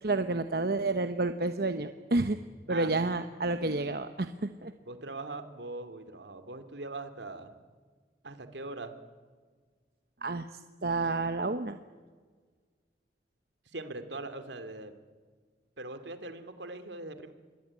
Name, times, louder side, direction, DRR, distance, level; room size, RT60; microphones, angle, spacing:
voice 1, 0.0-2.4 2.7-4.7 10.2-10.5 10.8-11.8, right 2 dB, 55° right, 9 dB, 1.0 m, -30 dB
voice 2, 4.9-7.5 8.2-9.0 13.7-14.9 15.8-17.3, right 2 dB, 75° right, 9 dB, 2.6 m, -41 dB
26.5 x 22.0 x 9.7 m, 1.5 s
head